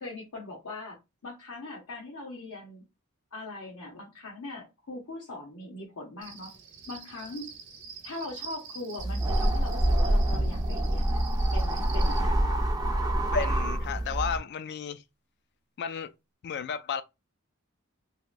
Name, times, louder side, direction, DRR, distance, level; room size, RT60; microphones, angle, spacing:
voice 1, 0.0-2.8 3.3-6.5 6.9-7.5 8.0-11.2 11.5-12.5, left 2 dB, 80° left, 0.8 m, -41 dB
Cricket, 6.2-12.2, right 5 dB, 60° right, 0.8 m, -45 dB
sound 1, 9.0-14.4, right 1 dB, 20° right, 0.5 m, -26 dB
sound 2, 10.3-12.9, right 2 dB, 90° right, 0.4 m, -42 dB
voice 2, 13.3-15.0 15.8-16.1 16.4-17.0, left 6 dB, 50° left, 0.3 m, -32 dB
2.9 x 2.9 x 2.4 m
head